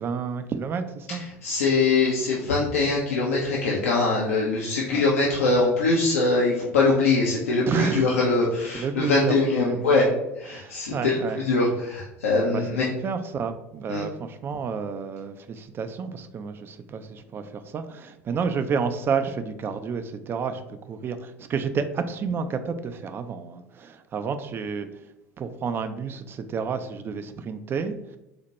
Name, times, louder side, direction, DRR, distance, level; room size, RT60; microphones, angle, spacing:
voice 1, 0.0-1.2 4.9-5.0 7.6-8.4 8.7-10.1 10.5-11.4 12.5-25.0 25.4-28.2, right 5 dB, 30° right, 0.3 m, -30 dB
voice 2, 1.4-10.1 10.4-12.9 13.9-14.0, left 3 dB, 75° left, 0.6 m, -23 dB
4.1 x 2.1 x 2.9 m
figure-of-eight pair, 70°, 8 cm